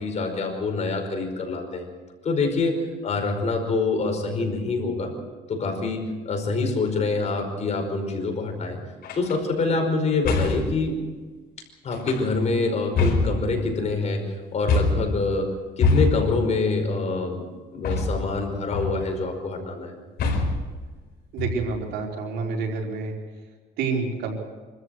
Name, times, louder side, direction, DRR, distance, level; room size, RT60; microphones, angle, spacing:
voice 1, 0.0-1.9 2.2-5.1 5.5-8.8 9.1-11.0 11.8-14.3 14.5-15.5 15.8-17.5 17.7-19.9, left 3 dB, 40° left, 4 dB, 5.3 m, -25 dB
sound 1, 9.0-9.3 10.2-10.8 11.9-12.5 13.0-13.9 14.7-15.2 15.8-16.4 17.8-18.4 18.7-19.2 20.2-20.7 21.4-21.9, left 3 dB, 65° left, 5.1 m, -24 dB
voice 2, 21.3-23.1 23.8-24.3, right 4 dB, 85° right, 0 dB, 4.4 m, -28 dB
25.5 x 14.0 x 7.9 m, 1.3 s
cardioid pair, 110°, 17 cm